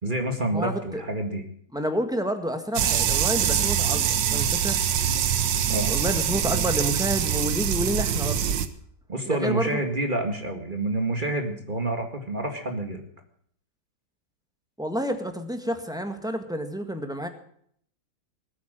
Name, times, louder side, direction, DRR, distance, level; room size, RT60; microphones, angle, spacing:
voice 1, 0.0-1.4 5.7-5.9 9.1-13.0, right 2 dB, 30° right, 5 dB, 2.0 m, -28 dB
voice 2, 0.5-1.0 1.7-4.8 5.9-8.4 9.2-9.8 14.8-17.3, equal, ahead, 7 dB, 1.6 m, -29 dB
sound 1, 2.8-8.7, right 9 dB, 90° right, 1.7 m, -24 dB
20.0 x 8.9 x 7.7 m, 0.64 s
omnidirectional pair, 1.9 m